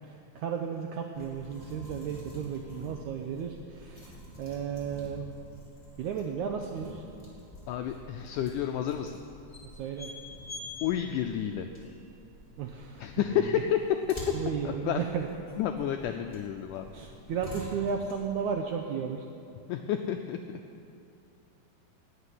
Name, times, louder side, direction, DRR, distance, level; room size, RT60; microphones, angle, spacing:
voice 1, 0.0-5.3 6.0-7.0 9.7-10.1 12.6-13.6 14.3-15.3 16.9-19.3, right 7 dB, 80° right, 3 dB, 1.7 m, -34 dB
sound 1, 1.1-18.5, left 2 dB, 10° left, 2.6 m, -47 dB
voice 2, 7.7-9.2 10.8-11.7 13.0-13.8 14.6-15.0 15.6-16.9 19.7-20.6, left 10 dB, 90° left, 6 dB, 1.8 m, -30 dB
16.0 x 6.0 x 9.8 m, 2.6 s
omnidirectional pair, 4.3 m